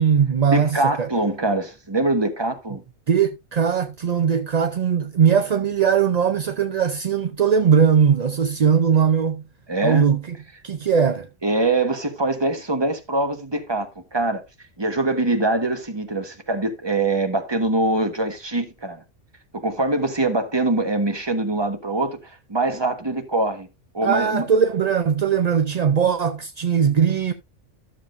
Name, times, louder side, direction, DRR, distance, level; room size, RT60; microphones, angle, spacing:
voice 1, 0.0-1.1 3.1-9.4 9.8-10.4 10.6-11.3 24.0-27.3, right 7 dB, 45° right, 0.6 m, -20 dB
voice 2, 0.5-2.8 9.7-10.1 11.4-14.4 14.8-19.0 19.5-22.2 22.5-23.7 23.9-24.5, right 2 dB, 20° right, 1.4 m, -23 dB
13.0 x 7.2 x 2.6 m
omnidirectional pair, 1.3 m